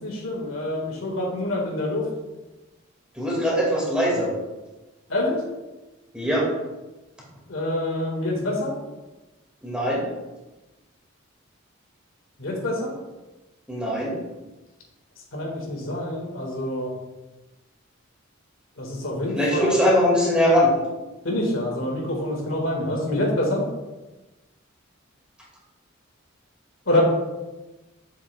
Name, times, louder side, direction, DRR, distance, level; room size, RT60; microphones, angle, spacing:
voice 1, 0.0-2.0 5.1-5.4 7.5-8.8 12.4-12.9 15.3-16.9 18.8-19.8 21.2-23.6 26.9-27.0, left 1 dB, 75° left, -1 dB, 1.9 m, -26 dB
voice 2, 3.2-4.3 6.1-6.5 9.6-10.0 13.7-14.2 19.3-20.7, equal, 5° right, -5 dB, 2.0 m, -21 dB
8.8 x 7.1 x 2.4 m, 1.1 s
head